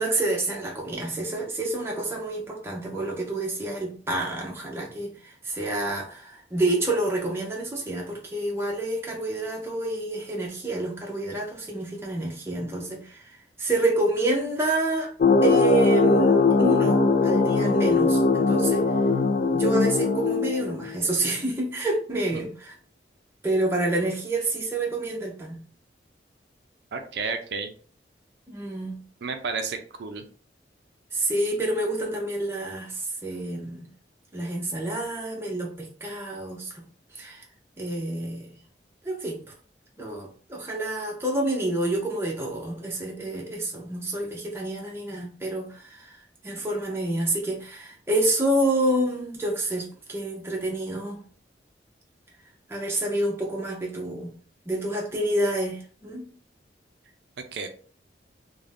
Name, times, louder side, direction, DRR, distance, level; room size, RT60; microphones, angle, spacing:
voice 1, 0.0-15.1 15.4-18.9 19.5-22.8 23.4-25.6 28.5-29.0 31.1-33.9 34.3-36.7 37.1-37.4 37.8-38.5 39.0-39.5 40.0-46.2 46.4-51.2 52.7-54.3 54.7-56.3, right 2 dB, 15° right, 0.6 m, -28 dB
sound 1, 15.2-20.9, left 3 dB, 50° left, 0.3 m, -20 dB
voice 2, 26.9-27.7 29.2-30.2 57.5-57.7, right 4 dB, 65° right, 0.4 m, -31 dB
2.5 x 2.1 x 3.2 m
head